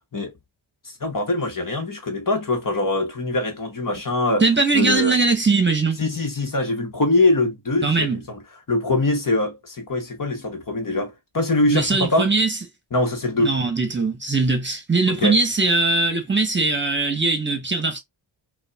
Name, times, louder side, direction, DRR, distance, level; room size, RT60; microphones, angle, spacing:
voice 1, 1.0-4.4 4.7-5.1 6.0-8.4 8.7-12.3 12.9-13.5 15.1-15.4, left 2 dB, 40° left, 1.4 m, -23 dB
voice 2, 4.4-6.0 7.8-8.2 11.7-12.6 13.4-18.0, right 3 dB, 25° right, 1.3 m, -20 dB
5.1 x 2.6 x 2.4 m
cardioid pair, 75°, 49 cm